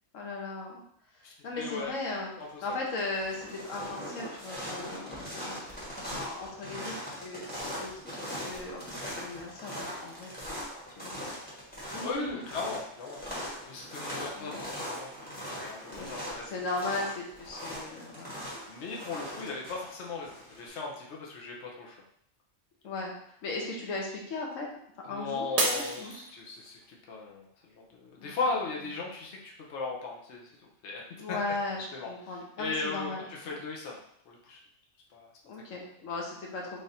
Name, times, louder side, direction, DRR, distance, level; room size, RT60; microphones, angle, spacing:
voice 1, 0.1-0.8 1.1-2.3 2.6-5.6 6.1-10.6 11.0-11.1 11.9-12.4 14.4-14.6 15.9-16.1 16.5-18.5 18.9-19.2 22.8-24.7 25.0-25.4 25.7-26.1 28.2-28.3 31.2-33.5 35.5-36.8, left 2 dB, 85° left, -1 dB, 1.2 m, -37 dB
voice 2, 1.2-1.9 2.4-2.5 12.0-14.6 14.9-16.5 18.7-22.0 25.0-31.4 31.9-32.1 32.6-34.6 35.1-35.3, left 4 dB, 65° left, -2 dB, 1.0 m, -37 dB
sound 1, 2.1-2.5 2.8-20.7, equal, 10° left, 1.2 m, -40 dB
Shatter, 25.6-26.8 27.4-27.8 28.4-28.5, right 2 dB, 50° right, 0.8 m, -31 dB
3.4 x 2.5 x 4.1 m, 0.69 s
omnidirectional pair, 1.3 m